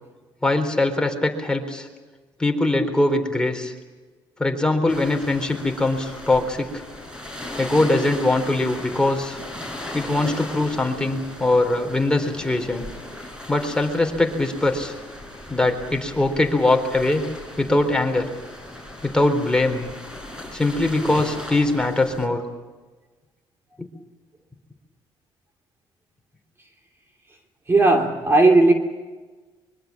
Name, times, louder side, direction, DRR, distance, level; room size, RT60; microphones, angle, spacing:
voice 1, 0.4-1.9 2.4-3.7 4.4-6.8 7.6-9.4 9.9-12.8 13.5-14.9 15.5-17.2 17.6-18.3 19.0-19.9 20.5-22.4, left 2 dB, 10° left, 4 dB, 4.0 m, -21 dB
sound 1, 4.9-22.3, left 1 dB, 10° right, 6.5 m, -37 dB
voice 2, 27.7-28.7, right 2 dB, 25° right, 4 dB, 2.9 m, -15 dB
24.5 x 23.5 x 7.4 m, 1.3 s
cardioid pair, 105°, 9 cm